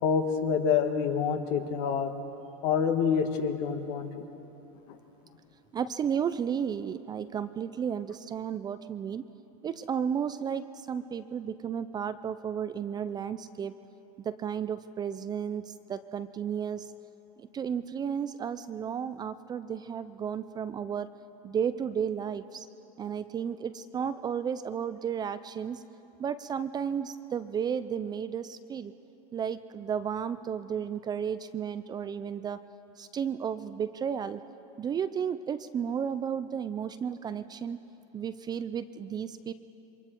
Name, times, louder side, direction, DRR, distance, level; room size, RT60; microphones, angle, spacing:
voice 1, 0.0-2.1 2.6-4.1 4.9-5.0, left 6 dB, 60° left, 6 dB, 1.9 m, -27 dB
voice 2, 5.7-9.2 9.6-13.7 14.2-16.9 17.5-21.1 21.4-22.7 23.0-25.8 26.2-28.9 29.3-32.6 33.0-34.4 34.8-37.8 38.1-39.5, right 7 dB, 20° right, 12 dB, 0.5 m, -33 dB
28.0 x 24.0 x 4.6 m, 3.0 s
supercardioid pair, 135°, 18 cm